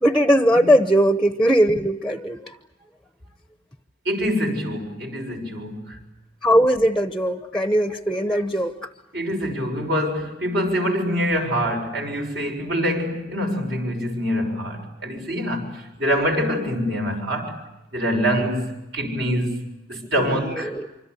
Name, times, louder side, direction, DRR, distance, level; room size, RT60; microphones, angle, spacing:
voice 1, 0.0-2.5 6.4-8.8 20.2-20.9, equal, ahead, 0.9 m, -19 dB
voice 2, 4.0-6.0 9.1-17.5 17.9-19.6 19.9-20.7, equal, 60° right, 6.8 m, -25 dB
26.0 x 25.5 x 8.3 m
head